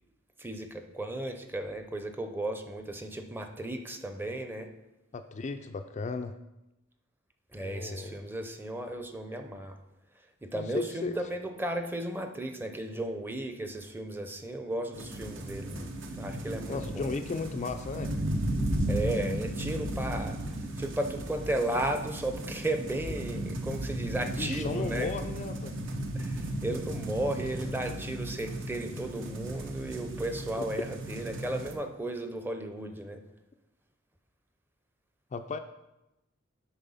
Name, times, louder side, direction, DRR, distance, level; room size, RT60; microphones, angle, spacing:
voice 1, 0.4-4.7 7.5-9.8 10.4-17.3 18.9-20.4 20.8-25.1 26.1-33.2, right 1 dB, 10° right, 6 dB, 0.6 m, -35 dB
voice 2, 5.1-6.4 7.6-8.2 10.5-11.2 16.7-18.1 24.2-25.8 30.6-30.7 35.3-35.6, left 4 dB, 35° left, 7 dB, 0.3 m, -35 dB
sound 1, 14.9-31.7, right 1 dB, 65° right, 1.0 m, -35 dB
9.0 x 4.3 x 5.6 m, 0.94 s
head